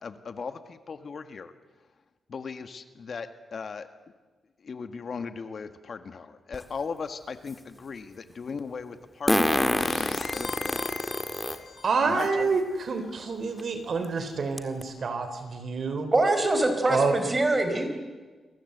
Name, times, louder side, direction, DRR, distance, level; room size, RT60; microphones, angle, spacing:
voice 1, 0.0-1.5 2.3-3.9 4.6-10.9 12.0-12.6, left 5 dB, 45° left, 9 dB, 1.6 m, -38 dB
Fart, 6.5-6.6 9.3-11.6 12.2-12.3 13.6-13.7 14.0-14.1 14.6-14.8, left 1 dB, 5° left, 1.7 m, -26 dB
sound 1, 9.8-12.2, left 6 dB, 75° left, 5.3 m, -40 dB
voice 2, 11.8-16.1 16.9-17.2, right 4 dB, 50° right, 9 dB, 3.8 m, -28 dB
voice 3, 16.1-17.9, right 2 dB, 25° right, 7 dB, 4.5 m, -24 dB
29.5 x 23.0 x 8.0 m, 1.3 s
wide cardioid pair, 145°, 0 cm